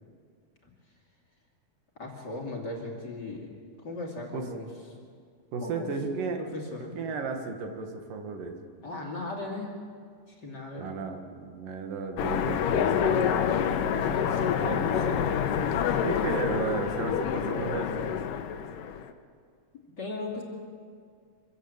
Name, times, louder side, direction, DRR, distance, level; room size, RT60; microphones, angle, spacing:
voice 1, 2.0-3.5 3.8-4.7 5.6-5.9 6.4-6.9 8.8-9.8 10.3-10.9 13.4-15.7 20.0-20.4, left 2 dB, 35° left, -1 dB, 3.0 m, -37 dB
voice 2, 5.5-6.4 7.0-8.6 10.8-13.5 14.6-15.3 16.0-18.1, right 4 dB, 80° right, 4 dB, 3.4 m, -34 dB
Train, 12.2-19.1, left 8 dB, 80° left, 2.6 m, -27 dB
25.5 x 16.0 x 8.0 m, 2.1 s
omnidirectional pair, 3.8 m